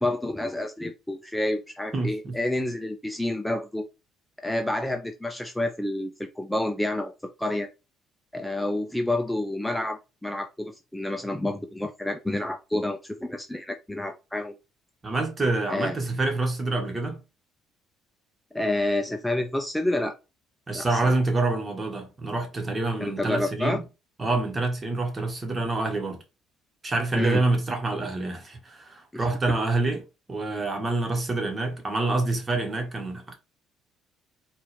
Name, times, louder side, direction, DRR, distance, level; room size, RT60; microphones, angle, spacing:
voice 1, 0.0-3.8 4.4-7.1 7.4-7.7 8.3-14.6 15.7-16.0 18.5-20.2 20.7-21.0 23.0-23.8 27.1-27.4 29.1-29.3, left 1 dB, 5° left, 0.6 m, -29 dB
voice 2, 1.9-2.3 15.0-17.2 20.7-23.8 24.2-26.2 26.8-30.0 30.3-33.4, right 2 dB, 30° right, 1.6 m, -27 dB
4.5 x 2.7 x 3.4 m
hypercardioid pair, 60°, 0 cm